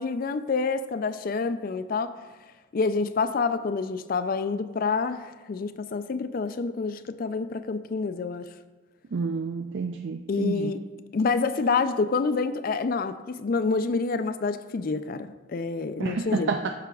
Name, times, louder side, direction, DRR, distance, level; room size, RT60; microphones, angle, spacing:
voice 1, 0.0-2.1 2.7-8.5 10.3-10.8 11.1-16.5, left 4 dB, 45° left, 11 dB, 0.3 m, -27 dB
voice 2, 9.1-10.7 16.0-16.7, right 4 dB, 60° right, 5 dB, 0.3 m, -29 dB
13.5 x 5.8 x 2.3 m, 1.2 s
head